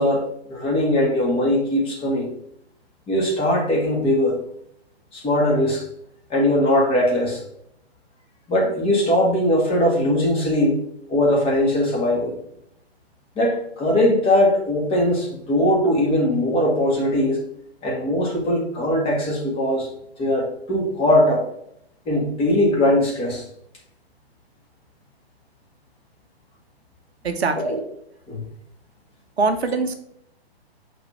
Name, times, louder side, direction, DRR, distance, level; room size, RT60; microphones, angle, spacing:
voice 1, 0.0-2.3 3.1-4.4 5.1-5.8 6.3-7.4 8.5-10.8 11.1-12.4 13.4-17.4 17.8-19.9 20.2-21.4 22.1-23.4 27.6-27.8 28.3-28.4, left 1 dB, 15° left, -1 dB, 1.8 m, -20 dB
voice 2, 27.2-27.8 29.4-29.9, right 4 dB, 80° right, 6 dB, 1.1 m, -22 dB
5.5 x 3.8 x 5.8 m, 0.74 s
figure-of-eight pair, 130°, 32 cm